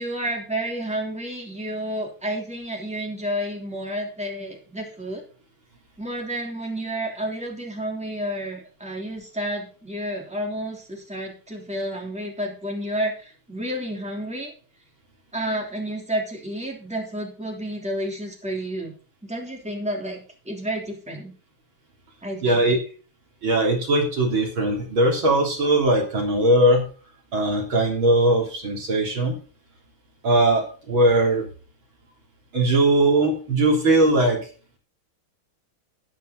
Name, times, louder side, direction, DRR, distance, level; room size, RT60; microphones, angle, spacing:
voice 1, 0.0-5.2 6.0-14.5 15.3-18.9 19.2-21.3 22.2-22.6, right 1 dB, 5° right, 0 dB, 3.3 m, -30 dB
voice 2, 22.4-22.8 23.4-26.9 27.3-29.4 30.2-31.5 32.5-34.4, right 1 dB, 65° right, 0 dB, 4.3 m, -20 dB
14.0 x 9.4 x 4.0 m, 0.38 s
omnidirectional pair, 2.4 m